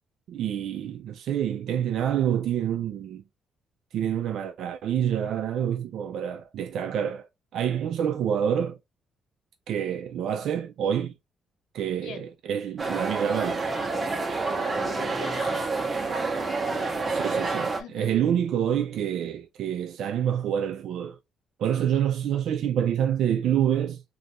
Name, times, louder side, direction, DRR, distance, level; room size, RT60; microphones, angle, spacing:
voice 1, 0.3-3.2 3.9-7.3 7.5-8.8 9.7-11.1 11.7-13.6 17.1-21.2 21.6-24.0, right 9 dB, 75° right, 0.3 m, -27 dB
sound 1, 12.8-17.8, right 3 dB, 30° right, 0.8 m, -28 dB
voice 2, 14.5-15.8 16.7-17.2 17.8-18.2, left 6 dB, 80° left, 0.7 m, -42 dB
2.6 x 2.4 x 3.2 m
cardioid pair, 90°, 0 cm